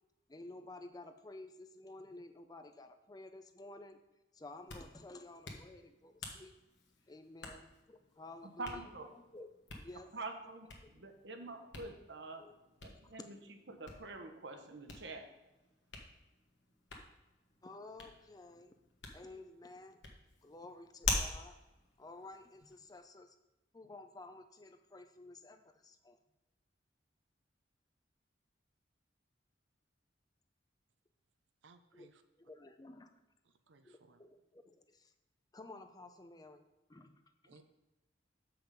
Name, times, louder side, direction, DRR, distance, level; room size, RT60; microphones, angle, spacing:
voice 1, 0.3-4.0 4.3-6.6 7.1-9.5 9.8-10.1 11.0-11.1 12.4-12.5 13.2-13.3 17.6-18.7 19.1-20.0 20.4-21.6 22.0-23.4 23.7-26.2 31.9-32.1 32.5-33.1 33.8-35.1 35.5-36.6 36.9-37.6, left 2 dB, 20° left, 8 dB, 0.5 m, -53 dB
Hands, 4.4-23.0, left 3 dB, 70° left, 1.4 m, -46 dB
voice 2, 8.6-9.1 10.1-12.5 12.8-13.4 13.7-15.3, right 3 dB, 65° right, 6 dB, 1.0 m, -46 dB
voice 3, 31.6-32.2 33.4-34.2 37.5-37.6, right 4 dB, 80° right, 9 dB, 0.6 m, -63 dB
7.3 x 5.8 x 5.2 m, 1.0 s
head